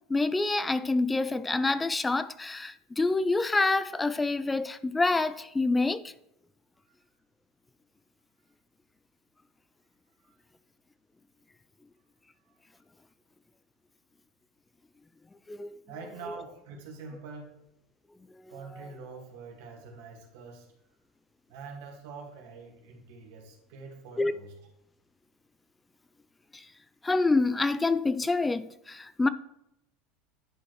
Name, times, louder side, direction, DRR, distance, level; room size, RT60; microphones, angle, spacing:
voice 1, 0.1-6.1 15.5-15.8 18.8-18.9 24.2-24.3 26.5-26.7 27.0-29.3, left 3 dB, 15° left, 0.3 m, -27 dB
voice 2, 15.9-17.5 18.5-20.7 21.5-24.5, right 4 dB, 75° right, 1.9 m, -45 dB
10.0 x 4.4 x 3.1 m
supercardioid pair, 105°, 0 cm